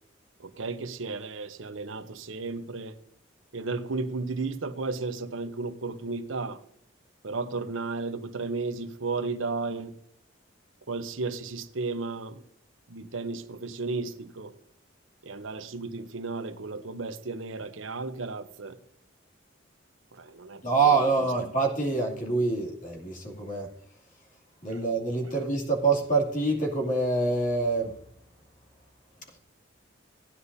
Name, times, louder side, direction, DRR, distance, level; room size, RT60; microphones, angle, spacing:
voice 1, 0.4-2.9 3.5-6.6 7.2-10.0 10.9-12.4 12.9-14.5 15.2-18.8 20.1-21.2 24.7-24.8, right 3 dB, 85° right, 0.8 m, -34 dB
voice 2, 20.6-23.7 24.6-27.9, right 3 dB, 40° left, 2.6 m, -26 dB
16.5 x 9.8 x 2.7 m
head